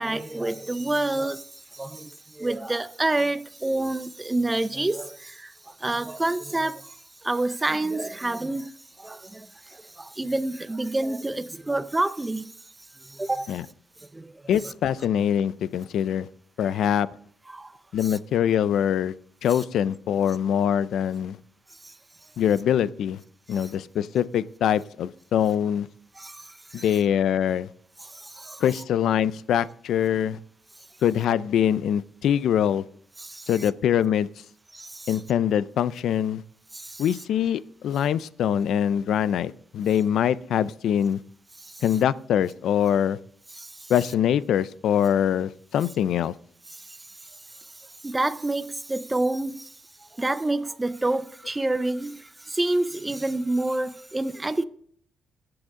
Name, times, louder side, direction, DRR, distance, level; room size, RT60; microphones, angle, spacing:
voice 1, 0.0-1.4 1.7-5.5 5.8-6.9 7.2-8.7 9.0-12.5 13.0-13.5 14.1-14.3 17.5-17.7 18.1-18.2 26.2-26.4 26.7-26.8 28.1-28.6 33.2-33.5 34.7-35.1 36.7-37.0 41.7-41.8 43.6-43.9 46.9-47.0 48.0-49.6 50.2-54.6, right 2 dB, 10° right, 0.5 m, -28 dB
voice 2, 14.5-16.3 16.6-17.1 17.9-19.1 19.4-21.4 22.4-23.2 23.5-25.9 26.7-27.7 28.6-30.4 31.0-32.8 33.5-34.3 35.1-36.4 37.0-41.2 41.8-43.2 43.9-46.3, left 9 dB, 75° left, 0.4 m, -23 dB
21.5 x 7.8 x 3.7 m
cardioid pair, 140°, 0 cm